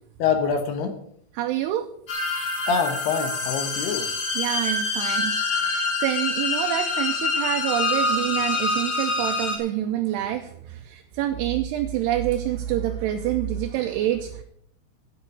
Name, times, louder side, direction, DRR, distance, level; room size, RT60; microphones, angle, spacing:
voice 1, 0.2-1.0 2.7-4.1, left 6 dB, 70° left, 6 dB, 3.1 m, -25 dB
voice 2, 1.4-1.9 4.4-14.4, right 12 dB, 80° right, 5 dB, 2.7 m, -27 dB
sound 1, 2.1-9.6, left 3 dB, 55° left, 1.2 m, -26 dB
9.2 x 8.7 x 7.6 m, 0.67 s
omnidirectional pair, 5.1 m